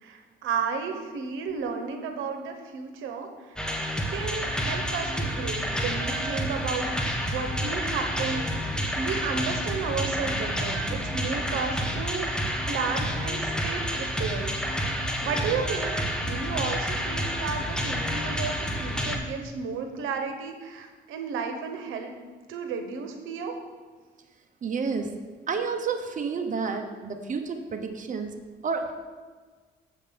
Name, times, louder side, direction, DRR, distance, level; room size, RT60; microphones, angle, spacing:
voice 1, 0.0-3.3 4.1-8.6 9.0-12.4 12.7-14.7 15.2-22.1 22.5-23.5, right 5 dB, 85° right, 5 dB, 1.0 m, -33 dB
sound 1, 3.6-19.2, equal, 5° left, 1.1 m, -29 dB
voice 2, 24.6-25.1 25.5-28.3 28.6-28.9, right 5 dB, 40° right, 4 dB, 0.9 m, -30 dB
7.6 x 5.3 x 6.8 m, 1.5 s
cardioid pair, 90°, 20 cm